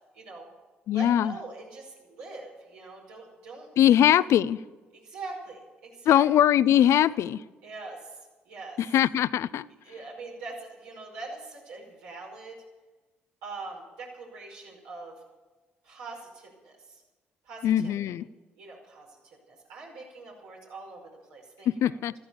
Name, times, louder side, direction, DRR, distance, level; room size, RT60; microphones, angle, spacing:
voice 1, 0.1-0.5 0.9-4.0 4.9-6.3 7.6-8.2 8.5-8.8 9.8-12.6 13.4-15.2 15.8-17.0 17.5-18.1 18.6-22.0, right 3 dB, 80° right, -2 dB, 5.3 m, -43 dB
voice 2, 0.9-1.3 3.8-4.6 6.1-7.4 8.8-9.7 17.6-18.3 21.7-22.1, left 11 dB, 60° left, 18 dB, 0.5 m, -21 dB
14.0 x 13.5 x 7.1 m, 1.2 s
hypercardioid pair, 50°, 5 cm